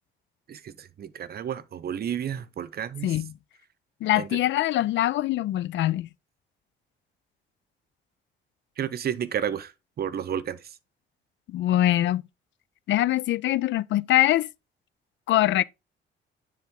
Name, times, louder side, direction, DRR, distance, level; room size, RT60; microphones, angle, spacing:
voice 1, 0.5-3.2 4.2-4.4 8.8-10.8, right 9 dB, 50° right, 0.7 m, -32 dB
voice 2, 3.0-3.3 4.0-6.1 11.5-12.3 12.9-14.5 15.3-15.6, left 14 dB, 70° left, 0.4 m, -23 dB
9.9 x 3.6 x 3.7 m
cardioid pair, 90°, 20 cm